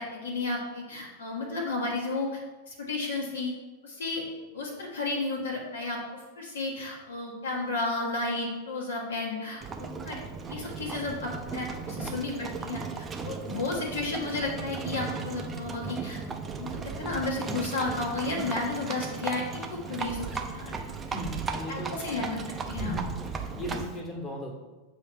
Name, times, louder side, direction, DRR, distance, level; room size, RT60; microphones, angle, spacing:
voice 1, 0.0-2.4 2.7-3.5 3.8-4.2 4.5-10.2 10.5-16.2 16.6-16.7 17.0-20.8 21.7-22.4 22.7-22.9, left 3 dB, 65° left, -1 dB, 1.1 m, -33 dB
Livestock farm animals working animals, 9.6-24.0, right 4 dB, 20° right, 0.6 m, -36 dB
voice 2, 21.1-22.0 22.8-24.5, equal, 20° left, 0 dB, 1.5 m, -36 dB
6.8 x 2.9 x 5.4 m, 1.2 s
figure-of-eight pair, 90°, 0 cm